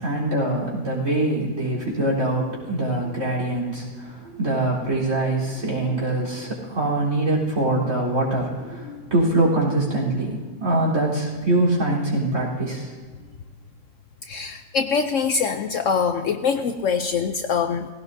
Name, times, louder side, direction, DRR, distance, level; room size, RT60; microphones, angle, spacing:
voice 1, 0.0-12.9, right 2 dB, 50° right, -3 dB, 4.2 m, -23 dB
voice 2, 14.2-17.9, left 5 dB, 65° left, 7 dB, 0.8 m, -24 dB
19.0 x 16.5 x 2.7 m, 1.4 s
omnidirectional pair, 1.6 m